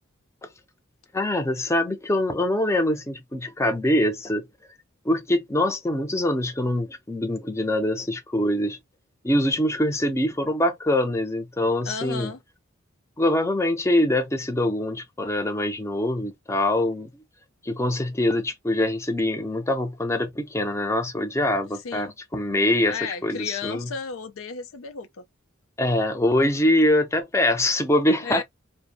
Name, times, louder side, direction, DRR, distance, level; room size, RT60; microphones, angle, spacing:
voice 1, 1.1-4.5 5.0-8.8 9.2-12.3 13.2-17.1 17.6-23.9 25.8-28.4, left 1 dB, 15° left, 0.5 m, -24 dB
voice 2, 11.9-12.4 21.8-22.1 22.9-25.2 28.2-28.4, left 5 dB, 85° left, 0.5 m, -33 dB
2.5 x 2.0 x 2.6 m
head